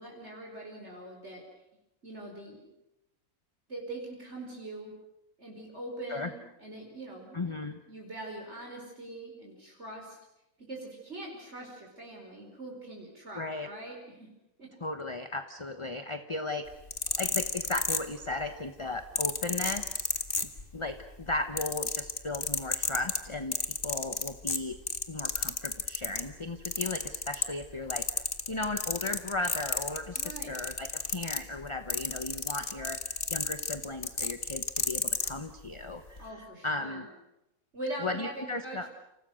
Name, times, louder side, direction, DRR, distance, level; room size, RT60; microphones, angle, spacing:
voice 1, 0.0-1.4 2.0-2.6 3.7-4.9 5.4-7.6 7.9-10.2 10.6-14.3 14.6-14.7 30.1-30.5 36.2-37.1 37.7-38.9, right 2 dB, 50° right, -1 dB, 5.3 m, -42 dB
voice 2, 7.3-7.8 13.4-13.7 14.8-16.6 17.2-20.1 20.7-24.8 25.1-33.0 33.3-37.1 38.0-38.9, left 2 dB, 20° left, 8 dB, 1.1 m, -36 dB
sound 1, 16.7-18.5 19.2-20.9 21.2-26.3 26.7-27.7 27.9-35.3 36.1-36.2, left 4 dB, 40° left, 1.9 m, -31 dB
30.0 x 28.0 x 6.5 m, 0.90 s
omnidirectional pair, 1.5 m